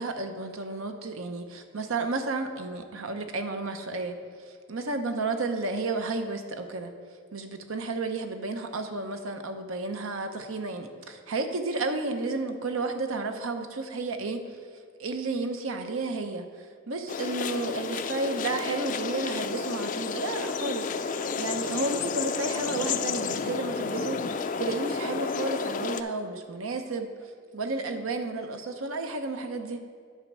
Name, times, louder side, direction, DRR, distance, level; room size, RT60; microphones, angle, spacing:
voice 1, 0.0-4.2 4.7-6.9 7.3-14.4 15.0-16.5 16.9-27.1 27.5-29.8, right 3 dB, 75° right, 6 dB, 0.8 m, -32 dB
sound 1, 17.1-26.0, left 5 dB, 40° left, 0.4 m, -31 dB
10.5 x 4.3 x 6.1 m, 2.2 s
head